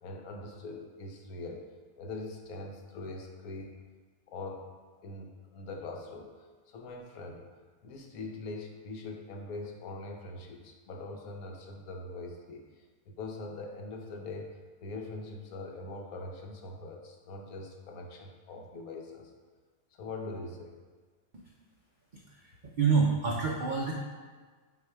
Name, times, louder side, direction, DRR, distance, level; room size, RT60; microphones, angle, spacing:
voice 1, 0.0-1.7 2.0-3.8 4.3-4.7 5.0-6.3 6.7-7.4 7.8-12.7 13.1-19.3 19.9-20.8, left 2 dB, 70° left, 2 dB, 1.2 m, -42 dB
voice 2, 22.3-23.9, right 5 dB, 65° right, -2 dB, 0.4 m, -28 dB
8.2 x 2.9 x 4.6 m, 1.5 s
omnidirectional pair, 1.7 m